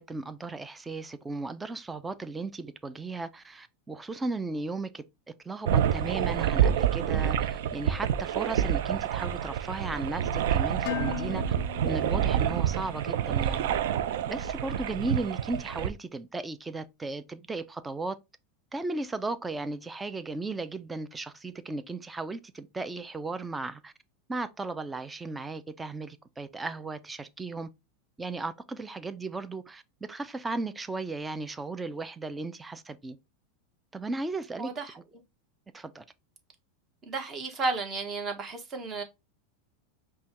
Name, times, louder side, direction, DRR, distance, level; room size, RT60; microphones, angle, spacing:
voice 1, 0.0-5.0 5.4-11.4 11.8-13.7 14.3-18.2 18.7-23.9 24.3-27.7 28.2-33.2 33.9-34.7 35.7-36.0, right 3 dB, 10° right, 0.4 m, -36 dB
sound 1, 5.7-15.9, right 9 dB, 75° right, 0.4 m, -28 dB
Dishes pots and pans, 10.9-12.9, left 12 dB, 60° left, 0.4 m, -37 dB
voice 2, 34.6-35.2 37.0-39.0, right 3 dB, 25° right, 1.1 m, -33 dB
5.3 x 2.3 x 2.9 m
supercardioid pair, 140°, 0 cm